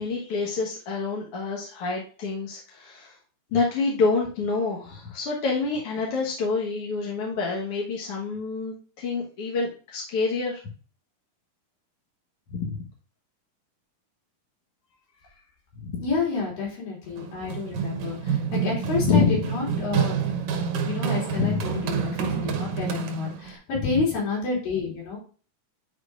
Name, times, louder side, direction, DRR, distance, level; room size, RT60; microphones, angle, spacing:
voice 1, 0.0-3.2 3.5-10.6 12.5-12.8 15.8-16.0 19.0-19.4 21.3-21.7, left 4 dB, 55° left, -2 dB, 1.8 m, -27 dB
voice 2, 16.0-20.2 20.7-25.2, left 4 dB, 90° left, -3 dB, 4.9 m, -29 dB
Run, 17.2-23.5, right 7 dB, 70° right, 2.1 m, -28 dB
10.0 x 4.6 x 2.5 m, 0.38 s
omnidirectional pair, 3.9 m